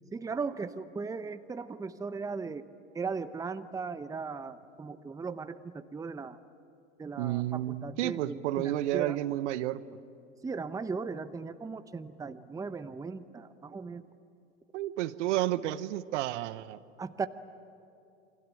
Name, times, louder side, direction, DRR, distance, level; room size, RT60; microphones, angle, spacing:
voice 1, 0.1-2.7 2.9-6.4 7.0-9.2 10.4-14.0 17.0-17.3, right 4 dB, 10° right, 12 dB, 0.8 m, -37 dB
voice 2, 7.2-9.8 14.7-16.8, right 14 dB, 65° right, 15 dB, 1.0 m, -31 dB
28.5 x 23.0 x 9.0 m, 2.6 s
hypercardioid pair, 105°, 39 cm